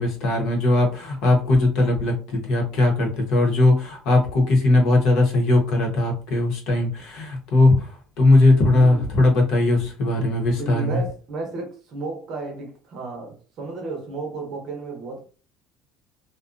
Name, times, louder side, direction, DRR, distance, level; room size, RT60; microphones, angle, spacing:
voice 1, 0.0-7.7 8.2-11.0, left 2 dB, 55° left, 0.9 m, -19 dB
voice 2, 8.7-9.0 10.1-15.2, right 3 dB, 40° right, 0.7 m, -33 dB
2.5 x 2.3 x 2.5 m
cardioid pair, 175°, 0 cm